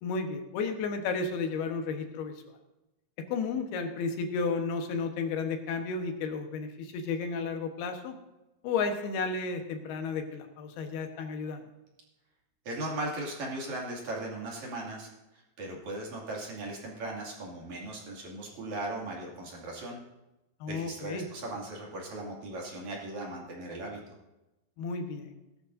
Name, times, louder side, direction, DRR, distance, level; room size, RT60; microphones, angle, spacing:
voice 1, 0.0-2.3 3.3-8.1 8.6-11.6 20.6-21.3 24.8-25.4, left 4 dB, 75° left, 5 dB, 3.1 m, -33 dB
voice 2, 12.7-20.0 20.7-24.0, right 2 dB, 50° right, -2 dB, 3.4 m, -38 dB
18.0 x 12.5 x 2.7 m, 0.97 s
omnidirectional pair, 4.8 m